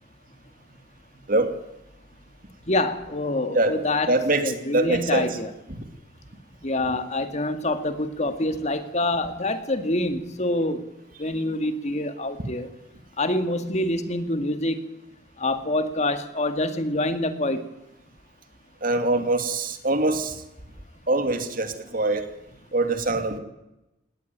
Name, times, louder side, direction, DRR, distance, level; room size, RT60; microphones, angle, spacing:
voice 1, 2.7-4.1 4.4-5.5 6.6-10.9 11.2-12.7 13.2-14.8 15.4-17.6, left 1 dB, 40° left, 9 dB, 2.0 m, -26 dB
voice 2, 4.1-5.3 18.8-20.4 21.1-22.3 22.7-23.4, right 2 dB, 50° right, 8 dB, 2.5 m, -23 dB
19.0 x 18.5 x 9.4 m, 0.93 s
head